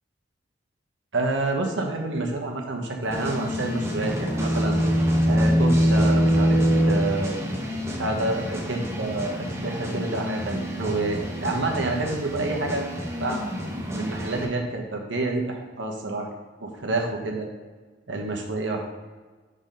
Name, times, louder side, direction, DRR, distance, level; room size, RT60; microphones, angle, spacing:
voice 1, 1.1-4.8 5.3-7.6 8.0-12.8 13.2-13.4 13.9-16.3 16.6-17.5 18.1-18.8, right 2 dB, 75° right, 1 dB, 1.2 m, -28 dB
sound 1, 3.1-14.5, equal, 15° right, 1.0 m, -32 dB
sound 2, 3.7-7.6, equal, 10° left, 1.4 m, -21 dB
5.3 x 4.0 x 5.8 m, 1.4 s
head